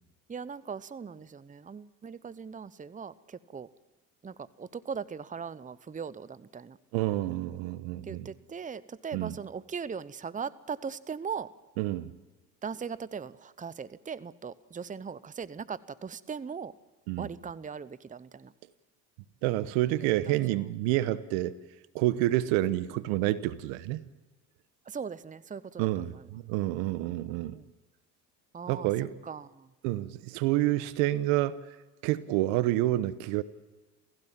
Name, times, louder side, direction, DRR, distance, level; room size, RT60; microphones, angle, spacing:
voice 1, 0.3-3.7 4.2-6.8 8.0-11.5 12.6-16.7 17.2-18.5 20.0-20.1 24.9-26.3 26.7-27.7 28.5-28.9 29.2-29.7, right 6 dB, 15° right, 18 dB, 0.8 m, -39 dB
voice 2, 6.9-8.3 9.1-9.3 11.8-12.1 17.1-17.3 19.4-21.5 21.9-24.0 25.8-27.6 28.7-29.1 29.8-31.6 32.0-33.4, right 15 dB, 70° right, 16 dB, 1.2 m, -28 dB
28.5 x 16.0 x 7.4 m, 1.1 s
hypercardioid pair, 65°, 47 cm